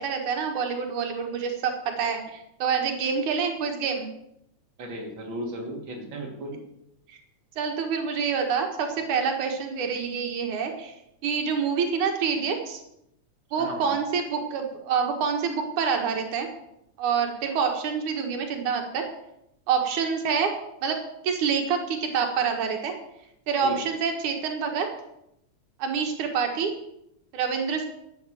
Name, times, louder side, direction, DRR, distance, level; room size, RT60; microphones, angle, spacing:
voice 1, 0.0-4.1 7.1-7.2 7.6-12.8 13.5-16.5 17.0-19.1 19.7-20.5 20.8-22.9 23.5-24.9 25.8-26.7 27.3-27.9, right 6 dB, 85° right, 3 dB, 3.1 m, -27 dB
voice 2, 4.8-6.5 13.6-14.0 23.6-24.0, right 1 dB, 40° right, 0 dB, 3.4 m, -35 dB
12.5 x 8.3 x 7.7 m, 0.80 s
omnidirectional pair, 3.4 m